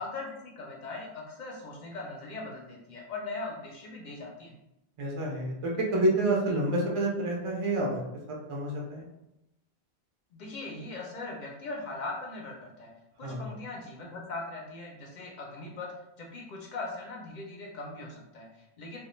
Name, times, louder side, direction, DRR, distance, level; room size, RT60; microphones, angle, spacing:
voice 1, 0.0-4.5 10.3-12.9 13.2-15.9 16.2-19.0, left 3 dB, 55° left, -1 dB, 0.6 m, -40 dB
voice 2, 5.0-8.0 8.5-9.1 13.2-13.5, right 1 dB, 45° right, -2 dB, 0.4 m, -28 dB
2.2 x 2.1 x 3.0 m, 0.88 s
omnidirectional pair, 1.1 m